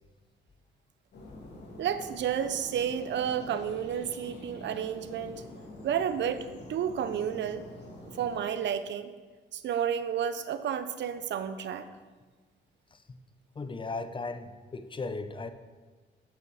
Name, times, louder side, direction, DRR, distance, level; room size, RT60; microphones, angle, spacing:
sound 1, 1.1-8.4, left 1 dB, 60° left, 2.3 m, -47 dB
voice 1, 1.8-5.4 5.8-7.7 8.2-9.1 9.5-11.9, right 8 dB, 65° right, 12 dB, 0.7 m, -31 dB
voice 2, 13.5-15.5, left 3 dB, 25° left, 10 dB, 0.6 m, -37 dB
7.6 x 5.8 x 6.3 m, 1.4 s
cardioid pair, 90°, 20 cm